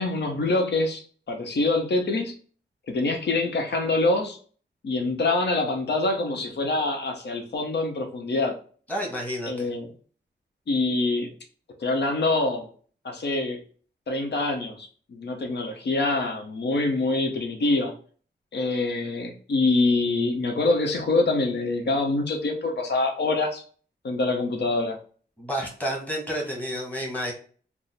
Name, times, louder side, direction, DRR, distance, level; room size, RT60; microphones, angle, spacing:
voice 1, 0.0-2.3 2.9-4.4 4.8-8.6 9.5-9.9 10.7-11.3 11.8-12.7 13.0-13.6 14.1-17.9 18.5-23.6 24.0-25.0, left 2 dB, 70° left, 3 dB, 0.8 m, -25 dB
voice 2, 8.9-9.7 25.4-27.3, equal, 10° left, -1 dB, 1.1 m, -30 dB
3.5 x 2.0 x 4.1 m, 0.43 s
wide cardioid pair, 160°, 18 cm